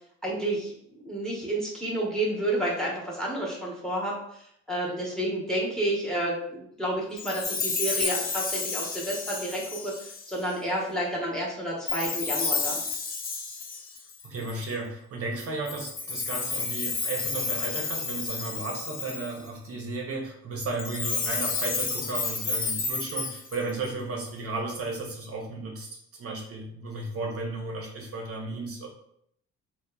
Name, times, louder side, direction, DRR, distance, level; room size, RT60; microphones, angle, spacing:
voice 1, 0.2-12.8, right 1 dB, ahead, -3 dB, 0.7 m, -30 dB
Chime, 7.2-10.5 11.9-14.7 15.7-19.5 20.7-23.9, left 4 dB, 30° left, 0.4 m, -31 dB
voice 2, 14.2-25.9 26.2-28.9, right 3 dB, 50° right, 0 dB, 0.6 m, -34 dB
2.8 x 2.1 x 2.2 m, 0.71 s
cardioid pair, 90°, 30 cm